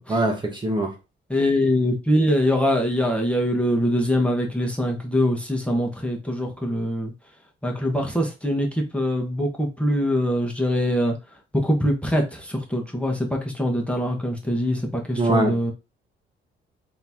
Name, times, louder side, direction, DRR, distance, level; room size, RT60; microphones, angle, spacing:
voice 1, 0.1-0.9 15.2-15.6, right 1 dB, 25° right, 1.1 m, -22 dB
voice 2, 1.3-7.1 7.6-11.1 11.5-15.7, equal, 5° left, 1.3 m, -23 dB
3.8 x 3.0 x 3.6 m
cardioid pair, 90°, 20 cm